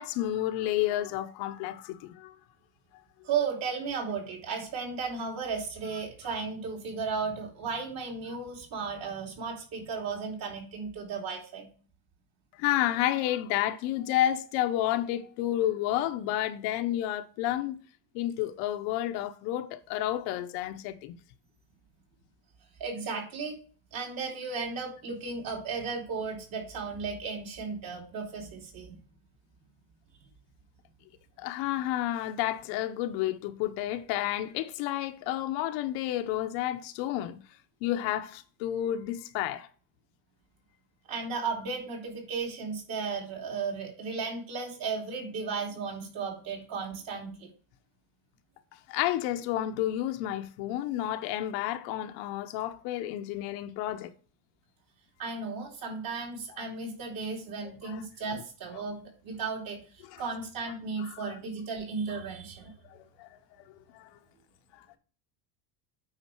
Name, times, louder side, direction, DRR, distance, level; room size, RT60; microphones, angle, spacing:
voice 1, 0.0-2.3 12.6-17.8 18.1-21.2 31.4-37.4 37.8-39.7 48.9-54.1 57.8-58.0 60.1-60.2 61.0-61.2 62.9-63.3 63.9-64.1 64.7-65.0, left 13 dB, 70° left, 0.9 m, -31 dB
voice 2, 3.2-11.7 22.8-23.6 23.9-29.0 41.1-47.5 55.2-62.7, right 5 dB, 50° right, 3.1 m, -35 dB
8.8 x 5.1 x 4.5 m
cardioid pair, 165°, 47 cm